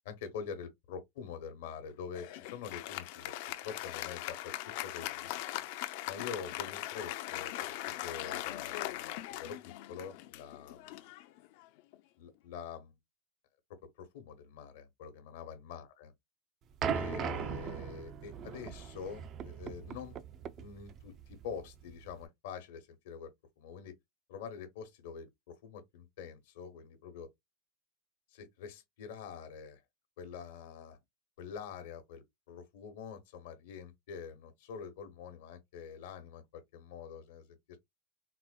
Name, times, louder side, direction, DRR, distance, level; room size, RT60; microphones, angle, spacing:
voice 1, 0.0-3.3 3.6-5.3 6.1-7.7 8.0-11.0 12.2-12.9 13.8-16.1 16.9-20.2 20.6-23.3 23.6-23.9 24.3-27.3 28.3-29.8 30.2-31.0 31.4-37.6, left 6 dB, 80° left, 1.0 m, -45 dB
Applause, 2.1-11.9, left 15 dB, 65° left, 0.4 m, -40 dB
sound 1, 16.8-22.2, right 7 dB, 35° right, 0.4 m, -39 dB
4.2 x 2.1 x 2.3 m
supercardioid pair, 150°, 0 cm